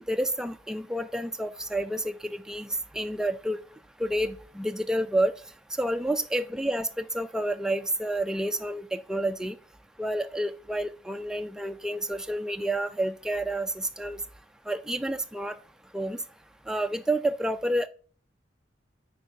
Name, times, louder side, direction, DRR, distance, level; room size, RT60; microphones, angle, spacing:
voice 1, 0.1-3.6 4.0-5.3 5.8-9.6 10.0-14.2 14.7-15.6 15.9-16.2 16.7-17.9, right 1 dB, 5° right, 8 dB, 0.3 m, -29 dB
9.3 x 3.5 x 5.2 m, 0.41 s
head